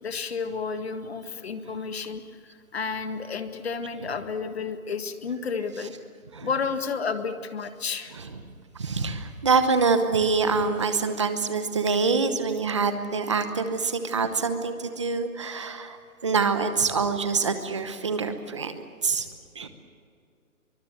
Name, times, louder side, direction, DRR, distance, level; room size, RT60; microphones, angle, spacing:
voice 1, 0.0-2.2 2.7-5.9 6.4-8.1, left 5 dB, 45° left, 9 dB, 1.7 m, -31 dB
voice 2, 6.3-6.7 8.1-8.5 8.7-19.3 19.5-19.7, right 4 dB, 20° right, 9 dB, 0.9 m, -26 dB
23.5 x 23.0 x 7.9 m, 2.3 s
hypercardioid pair, 175°, 43 cm